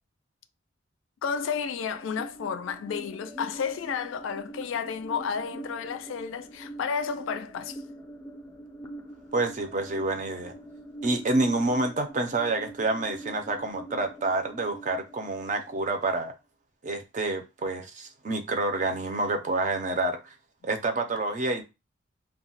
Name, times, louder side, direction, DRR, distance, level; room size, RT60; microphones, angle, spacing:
voice 1, 1.2-7.8, left 6 dB, 80° left, 0.3 m, -32 dB
sound 1, 1.3-16.3, right 1 dB, 15° left, 0.4 m, -44 dB
voice 2, 9.3-10.5 11.0-16.3 16.8-20.3 20.6-21.6, right 2 dB, 40° right, 0.5 m, -28 dB
2.3 x 2.1 x 3.8 m
head